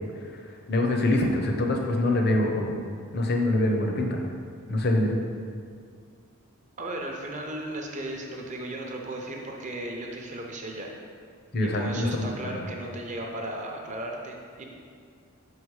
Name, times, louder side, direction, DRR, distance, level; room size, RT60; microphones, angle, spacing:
voice 1, 0.7-2.8 3.1-4.2 4.7-5.2 11.5-12.4, left 1 dB, 45° left, 2 dB, 0.7 m, -24 dB
voice 2, 6.8-10.9 11.6-14.6, right 1 dB, 35° right, 1 dB, 0.7 m, -36 dB
5.8 x 4.8 x 4.7 m, 2.2 s
head